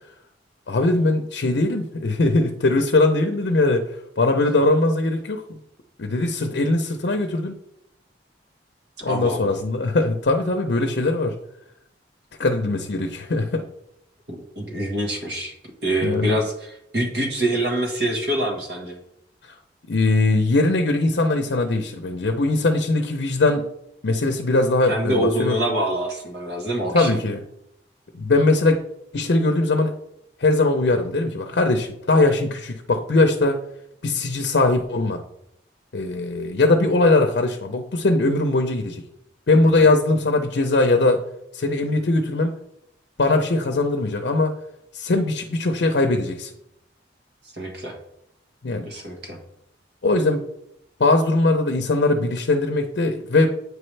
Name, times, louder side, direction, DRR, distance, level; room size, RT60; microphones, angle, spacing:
voice 1, 0.7-3.9 4.2-5.4 6.0-7.5 9.0-11.3 12.4-13.6 16.0-16.4 19.9-23.7 24.0-25.6 26.9-27.4 28.1-28.8 29.1-29.9 30.4-33.6 34.0-35.2 35.9-39.0 39.5-41.2 41.5-42.5 43.2-44.6 44.9-46.5 48.6-48.9 50.0-50.4 51.0-53.6, left 2 dB, 65° left, 5 dB, 0.6 m, -20 dB
voice 2, 9.1-9.5 14.3-15.5 15.8-19.0 24.9-27.2 47.5-48.0 48.9-49.4, right 1 dB, 60° right, 2 dB, 1.3 m, -25 dB
8.6 x 4.8 x 3.3 m, 0.79 s
head